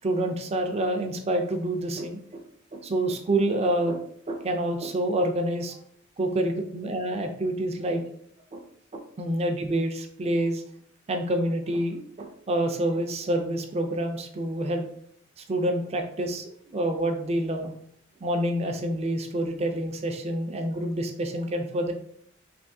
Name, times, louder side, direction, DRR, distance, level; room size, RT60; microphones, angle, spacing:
voice 1, 0.0-2.4 2.7-4.0 4.3-5.8 6.2-8.0 8.5-8.6 9.2-10.6 11.1-14.9 15.4-17.7 18.2-21.9, right 1 dB, 30° right, 4 dB, 0.4 m, -27 dB
3.3 x 2.9 x 2.6 m, 0.67 s
head